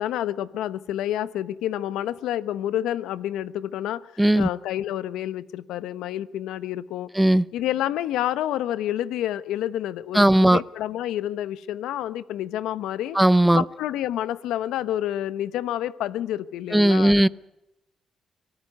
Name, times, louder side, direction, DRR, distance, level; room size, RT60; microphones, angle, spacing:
voice 1, 0.0-7.1 7.5-13.2 13.5-17.2, left 12 dB, 85° left, 16 dB, 1.0 m, -29 dB
voice 2, 4.2-4.5 7.2-7.4 10.1-10.6 13.1-13.6 16.7-17.3, right 1 dB, 5° right, 18 dB, 0.8 m, -17 dB
24.5 x 17.5 x 9.5 m, 0.92 s
cardioid pair, 90°, 0 cm